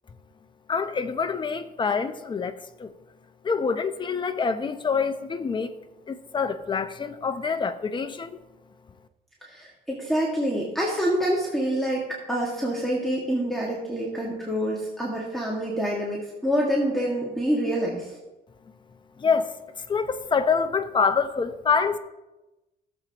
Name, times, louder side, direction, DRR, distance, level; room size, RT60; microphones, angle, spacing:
voice 1, 0.7-2.9 3.4-5.7 6.1-8.3 19.2-19.5 19.9-22.0, left 5 dB, 25° left, 0.7 m, -26 dB
voice 2, 9.4-18.1, equal, ahead, 1.9 m, -26 dB
17.0 x 7.4 x 2.9 m
cardioid pair, 115°, 18 cm